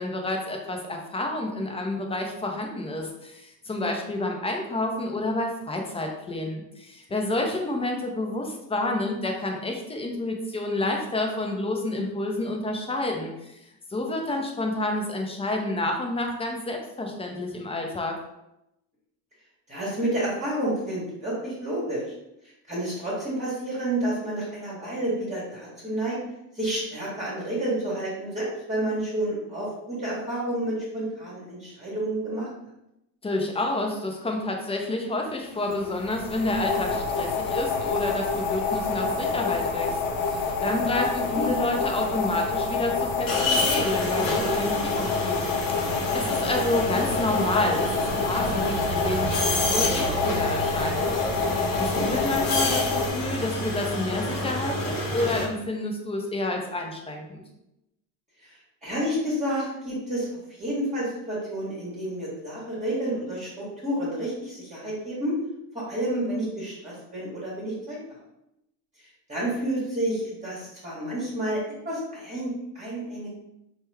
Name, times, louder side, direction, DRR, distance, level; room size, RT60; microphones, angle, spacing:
voice 1, 0.0-13.6 13.9-18.2 33.2-51.0 51.8-57.4, left 2 dB, 15° left, 1 dB, 0.4 m, -29 dB
voice 2, 19.7-22.0 22.7-26.2 26.5-32.5 41.3-41.5 51.9-52.1 58.4-65.3 65.7-68.2 69.0-73.3, right 1 dB, 15° right, -7 dB, 1.4 m, -30 dB
sound 1, 35.7-53.1, left 4 dB, 70° left, 0.8 m, -28 dB
sound 2, 43.3-55.4, left 1 dB, 45° left, 1.0 m, -28 dB
2.9 x 2.2 x 3.3 m, 0.86 s
hypercardioid pair, 85°, 47 cm